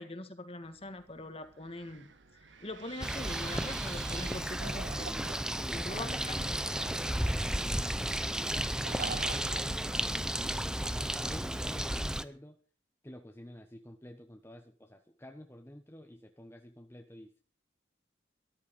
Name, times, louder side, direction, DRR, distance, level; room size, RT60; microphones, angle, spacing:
voice 1, 0.0-2.1 2.6-5.2 5.7-6.5, left 2 dB, 30° left, 8 dB, 1.8 m, -43 dB
Wind, 0.6-10.7, right 7 dB, 80° right, 1.8 m, -51 dB
Bird, 3.0-12.2, right 1 dB, 5° right, 0.6 m, -33 dB
sound 1, 4.6-5.9 6.6-7.8 8.8-9.6, right 5 dB, 50° right, 0.6 m, -43 dB
voice 2, 5.6-6.6 7.2-12.6 13.0-17.4, left 1 dB, 15° left, 3 dB, 1.1 m, -50 dB
14.0 x 13.0 x 5.4 m, 0.40 s
head